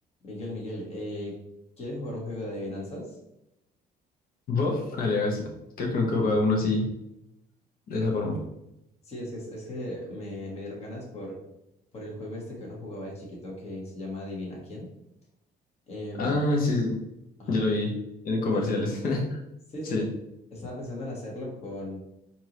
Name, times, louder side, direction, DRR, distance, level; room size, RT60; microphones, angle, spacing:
voice 1, 0.2-1.3 1.8-3.1 9.0-11.4 11.9-14.9 15.9-16.4 17.4-17.5 18.5-18.7 19.7-20.0 20.5-22.0, left 1 dB, 40° left, -3 dB, 1.4 m, -37 dB
voice 2, 4.5-5.5 5.8-6.8 7.9-8.4 16.2-17.0 17.5-17.9 18.2-19.4 19.9-20.0, left 2 dB, 60° left, 0 dB, 1.0 m, -26 dB
4.5 x 2.7 x 3.0 m, 0.84 s
cardioid pair, 110°, 17 cm